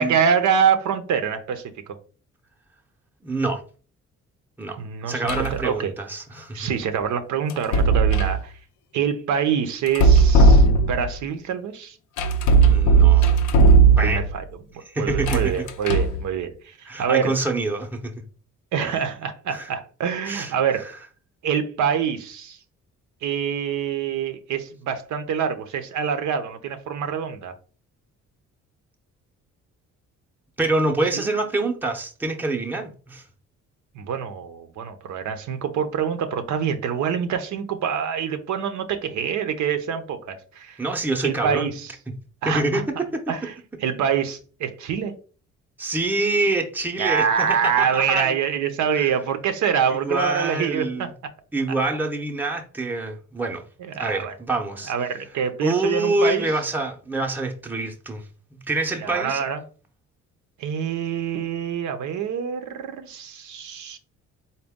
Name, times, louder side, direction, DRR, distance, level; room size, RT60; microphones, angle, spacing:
voice 1, 0.0-1.6 4.8-5.9 6.5-8.5 8.9-12.0 14.0-14.4 15.0-17.3 18.7-20.8 21.4-22.6 23.2-27.5 31.1-31.3 33.9-40.8 41.2-41.9 42.4-42.8 43.3-43.5 43.8-45.1 47.0-51.1 53.8-54.3 54.9-56.5 59.0-59.6 60.6-64.0, right 7 dB, 70° right, 0.6 m, -25 dB
voice 2, 3.2-3.6 4.6-4.8 5.1-6.7 12.7-13.3 14.0-14.2 14.9-15.5 16.9-18.1 19.5-19.7 20.2-20.5 20.8-20.9 30.6-33.2 40.8-41.7 42.5-42.8 43.1-43.2 45.8-48.4 48.9-49.1 49.9-51.1 51.5-53.6 54.0-54.9 55.6-58.2 58.5-59.4, right 2 dB, 5° right, 0.7 m, -26 dB
sound 1, 5.3-5.6 7.5-8.4 9.9-11.2 12.2-14.4 15.1-16.2, right 4 dB, 80° left, 0.6 m, -16 dB
4.0 x 2.2 x 3.5 m
cardioid pair, 90°, 30 cm